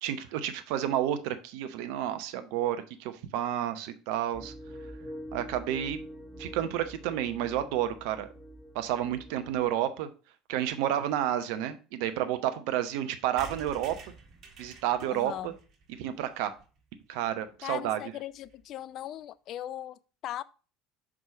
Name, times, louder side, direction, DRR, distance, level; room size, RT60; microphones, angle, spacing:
voice 1, 0.0-4.5 5.3-6.0 6.4-8.3 8.7-10.1 10.5-14.0 14.6-15.5 15.9-16.6 17.1-18.0, right 11 dB, 60° right, 0.8 m, -30 dB
sound 1, 4.3-9.7, equal, 20° left, 2.9 m, -45 dB
sound 2, 13.4-17.1 17.5-17.6 17.8-17.9 18.1-18.2 18.4-18.6, right 3 dB, 40° right, 1.6 m, -49 dB
voice 2, 15.1-15.5 17.6-20.4, left 12 dB, 45° left, 0.3 m, -39 dB
6.2 x 4.9 x 3.8 m
figure-of-eight pair, 65°, 0 cm